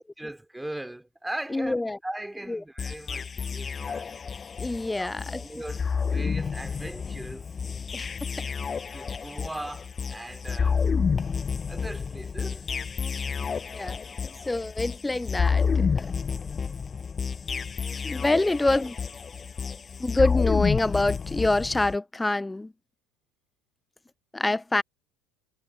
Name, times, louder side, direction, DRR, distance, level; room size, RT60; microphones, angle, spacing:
voice 1, 0.0-4.1 5.0-7.5 8.9-10.9 11.7-12.7 18.4-18.5, right 1 dB, 5° right, 2.5 m, -39 dB
voice 2, 1.5-2.0 2.5-2.6 4.6-5.4 7.9-8.1 8.4-8.5 13.7-16.1 18.0-18.9 20.0-22.7 24.3-24.8, left 2 dB, 10° left, 0.4 m, -26 dB
sound 1, 2.8-22.0, left 6 dB, 25° left, 4.9 m, -30 dB
figure-of-eight pair, 75°, 0 cm